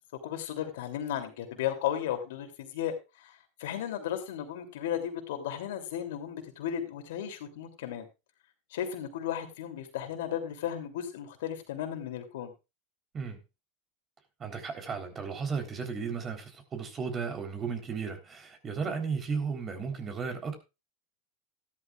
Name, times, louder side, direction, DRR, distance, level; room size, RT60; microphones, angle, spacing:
voice 1, 0.2-8.1 8.7-12.5, left 10 dB, 75° left, 3.0 m, -35 dB
voice 2, 14.4-20.6, right 5 dB, 30° right, 3.8 m, -34 dB
14.0 x 12.5 x 2.5 m
hypercardioid pair, 100°, 0 cm